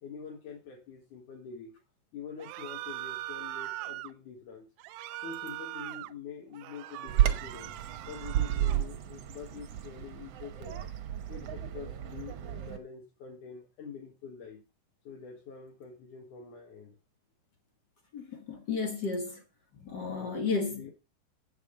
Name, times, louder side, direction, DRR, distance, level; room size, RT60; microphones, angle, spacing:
voice 1, 0.0-1.8 2.1-4.7 5.2-7.7 8.1-10.8 11.3-14.6 15.0-17.0 20.2-20.9, left 6 dB, 70° left, 3.1 m, -46 dB
sound 1, 2.4-4.1 4.8-6.1 6.5-8.8, right 17 dB, 80° right, 2.0 m, -41 dB
Bird vocalization bird call bird song, 7.1-12.8, right 12 dB, 65° right, 1.6 m, -32 dB
voice 2, 18.1-19.4 19.8-20.9, left 4 dB, 55° left, 1.2 m, -33 dB
8.8 x 6.4 x 5.2 m
omnidirectional pair, 3.8 m